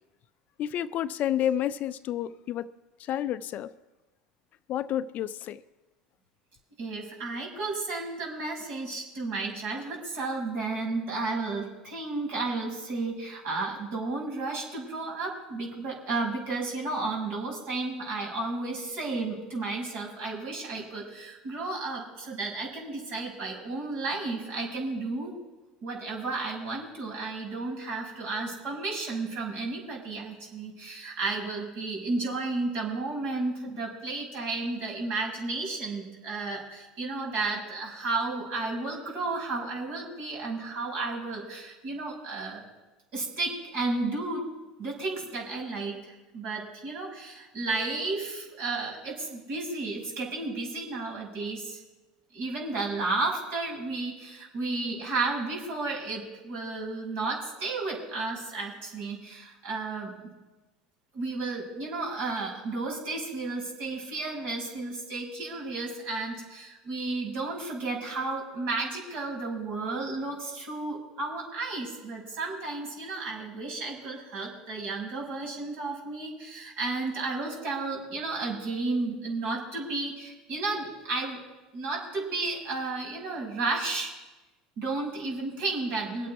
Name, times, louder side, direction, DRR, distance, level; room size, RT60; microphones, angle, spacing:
voice 1, 0.6-2.7 3.0-3.7 4.7-5.6, left 11 dB, 50° left, 14 dB, 0.5 m, -30 dB
voice 2, 6.8-25.4 25.8-42.6 43.1-44.4 44.8-51.8 52.3-60.1 61.1-81.4 81.7-84.1 84.8-86.3, right 3 dB, 60° right, -1 dB, 6.2 m, -33 dB
24.0 x 8.6 x 4.8 m, 1.1 s
hypercardioid pair, 80°, 4 cm